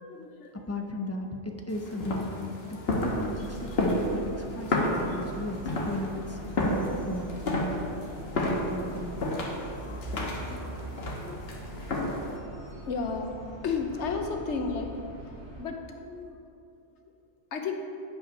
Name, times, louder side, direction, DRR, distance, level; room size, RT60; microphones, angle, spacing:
voice 1, 0.0-0.6 1.9-2.0 2.7-3.0 3.7-3.9 4.6-5.2 7.3-7.4 7.7-9.1 9.5-10.3 11.2-14.9 15.2-16.4 17.0-17.1 17.5-17.7, left 5 dB, 80° left, 4 dB, 1.1 m, -37 dB
voice 2, 0.7-2.4 2.7-4.2 4.5-5.6 5.9-6.4 6.6-7.3 8.7-9.1, left 1 dB, 20° left, 2 dB, 0.5 m, -35 dB
sound 1, 1.7-12.4, left 1 dB, 60° left, 1.4 m, -31 dB
sound 2, 2.9-15.6, right 2 dB, 75° right, 1.7 m, -42 dB
9.7 x 5.7 x 5.3 m, 2.6 s
omnidirectional pair, 1.2 m